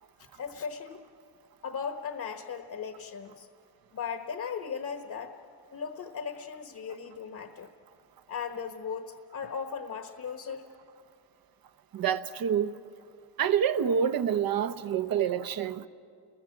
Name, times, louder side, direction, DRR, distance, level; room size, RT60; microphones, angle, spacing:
voice 1, 0.2-1.0 1.6-3.5 3.9-5.4 5.7-7.7 8.3-10.7, left 6 dB, 50° left, 1.2 m, -37 dB
voice 2, 11.9-12.7 13.4-15.9, right 8 dB, 65° right, 0.9 m, -27 dB
29.5 x 21.5 x 7.3 m
wide cardioid pair, 145°, 39 cm